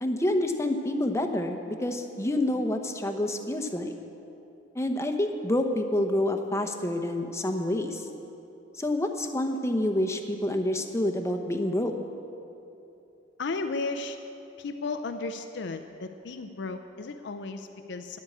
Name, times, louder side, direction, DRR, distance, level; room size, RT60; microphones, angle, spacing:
voice 1, 0.0-3.9 4.7-8.0 8.8-11.9, left 1 dB, 15° left, 5 dB, 0.8 m, -28 dB
voice 2, 13.4-14.2 14.6-18.2, left 3 dB, 65° left, 7 dB, 0.5 m, -34 dB
10.5 x 8.1 x 8.5 m, 2.8 s
head